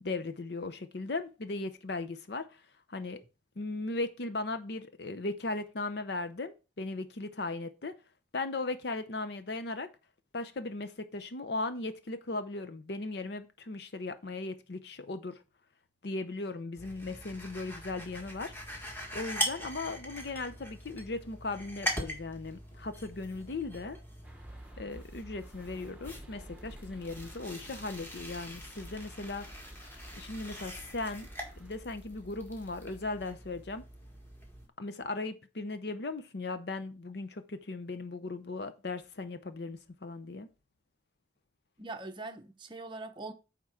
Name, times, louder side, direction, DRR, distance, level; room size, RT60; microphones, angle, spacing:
voice 1, 0.0-2.6 2.9-3.2 3.6-7.9 8.3-9.9 10.3-15.4 16.0-18.5 19.1-24.0 24.8-29.4 30.2-31.3 31.6-33.8 34.8-40.5, left 3 dB, 55° left, 0.6 m, -37 dB
sound 1, 16.8-34.7, equal, 10° left, 1.6 m, -42 dB
sound 2, 24.2-31.7, right 1 dB, 5° right, 1.0 m, -52 dB
voice 2, 41.8-43.3, right 2 dB, 25° right, 0.7 m, -42 dB
9.2 x 3.7 x 5.7 m
head